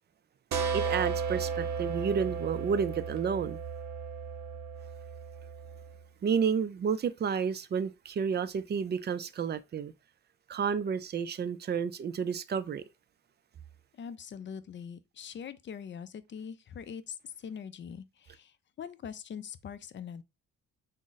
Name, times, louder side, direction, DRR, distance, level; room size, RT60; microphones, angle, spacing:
sound 1, 0.5-6.0, right 6 dB, 65° right, 0.8 m, -34 dB
voice 1, 0.7-3.6 6.2-9.9 10.5-12.8, right 6 dB, 35° right, 0.4 m, -31 dB
voice 2, 13.9-20.2, left 7 dB, 40° left, 0.5 m, -43 dB
3.6 x 2.1 x 3.9 m
cardioid pair, 90°, 30 cm